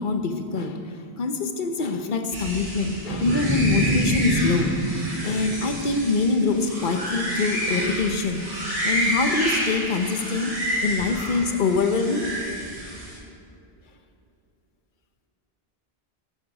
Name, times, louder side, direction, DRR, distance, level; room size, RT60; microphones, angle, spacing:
voice 1, 0.0-4.8 5.2-12.3, left 3 dB, 55° left, 7 dB, 1.0 m, -24 dB
sound 1, 2.3-13.2, equal, 35° right, 2.1 m, -30 dB
sound 2, 3.1-6.4, right 2 dB, 20° right, 0.5 m, -27 dB
12.0 x 9.3 x 4.9 m, 2.6 s
omnidirectional pair, 1.0 m